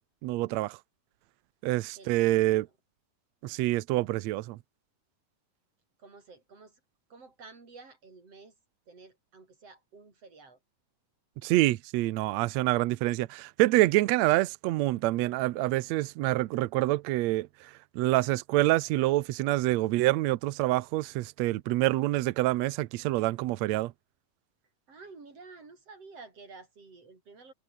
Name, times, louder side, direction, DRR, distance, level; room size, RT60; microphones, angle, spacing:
voice 1, 0.2-0.8 1.6-2.7 3.4-4.6 11.4-17.7 17.9-23.9, right 17 dB, 85° right, 1.5 m, -26 dB
voice 2, 2.0-2.7 6.0-6.8 7.1-8.5 8.9-10.6 24.9-27.5, right 4 dB, 45° right, 6.5 m, -51 dB
omnidirectional pair, 4.0 m